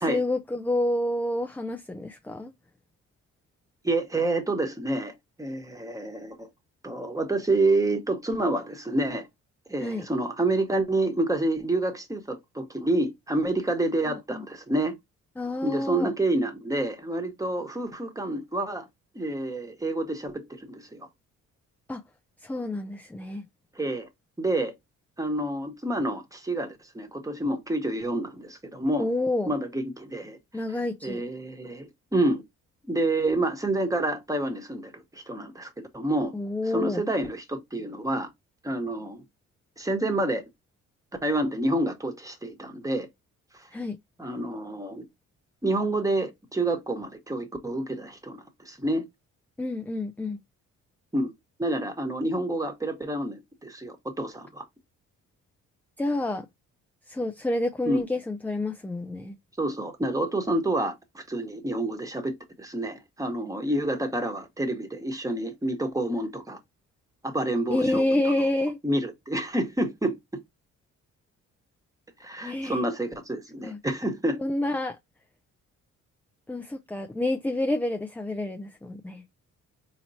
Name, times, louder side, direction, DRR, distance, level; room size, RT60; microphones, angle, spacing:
voice 1, 0.1-2.5 9.8-10.1 14.1-14.4 15.4-16.1 21.9-22.0 22.4-23.4 29.0-29.5 30.5-31.2 36.3-37.0 43.7-44.0 49.6-50.4 56.0-56.5 57.1-59.4 67.7-68.8 72.4-72.8 73.6-73.8 74.4-75.0 76.5-79.2, left 1 dB, 5° left, 0.4 m, -28 dB
voice 2, 3.8-5.1 5.4-6.5 6.8-9.3 9.7-14.9 15.6-18.9 19.1-21.1 23.7-24.1 24.4-24.7 25.2-29.1 29.5-30.6 31.0-32.4 32.9-36.3 36.6-38.3 38.6-39.2 39.8-40.4 41.2-43.1 44.2-45.0 45.6-49.0 51.1-51.3 51.6-54.6 57.9-58.0 59.6-66.6 67.2-68.3 68.8-70.2 72.2-74.4, right 2 dB, 10° right, 1.1 m, -28 dB
4.2 x 3.0 x 2.7 m
cardioid pair, 90°, 30 cm